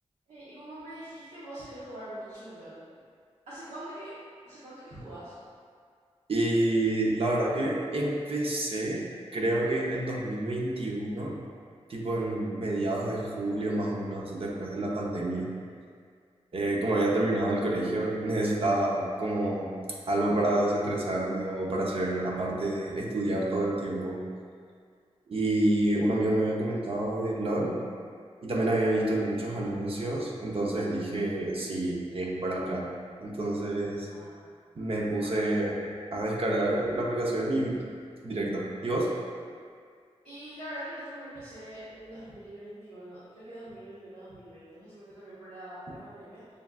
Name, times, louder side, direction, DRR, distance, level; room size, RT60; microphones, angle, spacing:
voice 1, 0.3-2.8 3.5-4.1 4.4-5.4 34.1-34.5 40.2-46.4, right 1 dB, 85° right, -12 dB, 1.0 m, -43 dB
voice 2, 6.3-9.0 9.3-11.4 11.9-15.5 16.5-19.7 20.1-24.2 25.3-27.8 28.4-32.9 33.2-34.1 34.8-35.8 36.1-37.8 38.2-39.1, right 1 dB, 55° right, -3 dB, 0.7 m, -28 dB
6.7 x 2.4 x 2.3 m, 2.1 s
cardioid pair, 60°, 11 cm